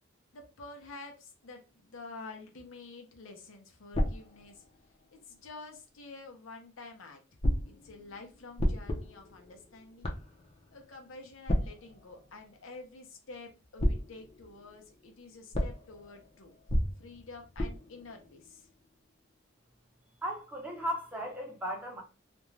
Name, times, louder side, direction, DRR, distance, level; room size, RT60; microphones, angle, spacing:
voice 1, 0.3-4.7 5.1-7.2 7.6-10.1 10.7-16.5 17.0-18.7, left 3 dB, 80° left, 0.7 m, -49 dB
sound 1, 3.9-5.8 7.4-13.4 13.8-19.2, equal, 30° left, 0.6 m, -35 dB
voice 2, 20.2-22.0, equal, 10° right, 0.7 m, -36 dB
2.5 x 2.2 x 3.1 m
head